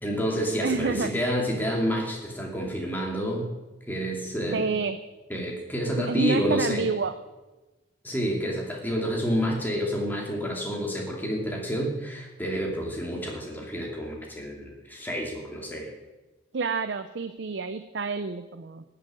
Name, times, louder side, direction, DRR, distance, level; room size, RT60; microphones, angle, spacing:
voice 1, 0.0-3.5 3.9-4.6 5.3-6.8 8.0-15.9, equal, 10° left, -1 dB, 2.6 m, -29 dB
voice 2, 0.6-1.1 4.5-5.0 6.0-7.2 16.5-18.8, right 4 dB, 60° right, 10 dB, 0.6 m, -28 dB
14.5 x 6.9 x 9.6 m, 1.1 s
head